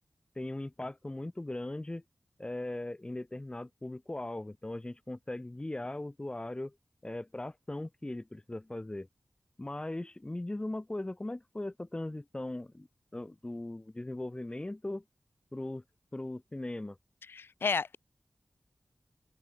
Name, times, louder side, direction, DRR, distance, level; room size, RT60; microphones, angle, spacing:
voice 1, 0.3-2.0 2.4-6.8 7.0-9.1 9.6-12.9 13.1-15.0 15.5-15.8 16.1-17.0, left 1 dB, 25° left, 2.7 m, -39 dB
voice 2, 17.3-18.0, left 5 dB, 85° left, 1.1 m, -31 dB
wide cardioid pair, 55°, 4 cm